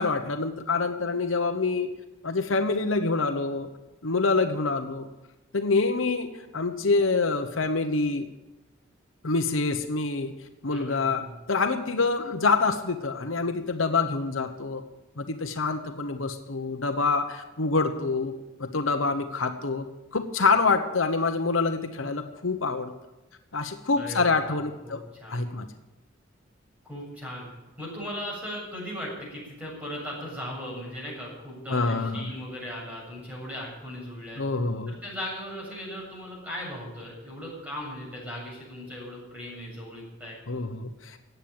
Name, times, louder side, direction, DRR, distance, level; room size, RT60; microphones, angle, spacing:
voice 1, 0.0-1.9 2.2-3.7 4.0-5.1 5.5-8.2 9.2-10.3 10.6-14.8 15.2-18.3 18.6-19.9 20.1-22.9 23.5-25.0 25.3-25.7 31.7-32.3 34.4-34.9 40.5-41.2, left 3 dB, 75° left, 7 dB, 1.1 m, -26 dB
voice 2, 10.7-11.3 24.0-24.6 24.8-25.4 26.9-27.4 27.8-34.4 34.9-40.4, equal, 10° right, -4 dB, 7.8 m, -38 dB
15.0 x 9.2 x 9.0 m, 1.0 s
head